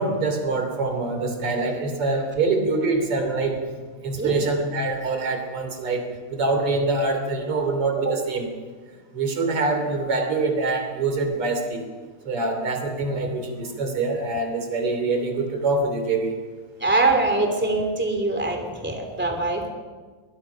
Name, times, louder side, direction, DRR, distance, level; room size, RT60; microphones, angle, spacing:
voice 1, 0.0-3.6 4.0-8.5 9.1-11.9 12.3-16.3, right 3 dB, 90° right, 5 dB, 4.0 m, -25 dB
voice 2, 16.8-19.7, right 2 dB, 5° right, 4 dB, 2.8 m, -23 dB
23.0 x 20.5 x 5.8 m, 1.4 s
omnidirectional pair, 2.4 m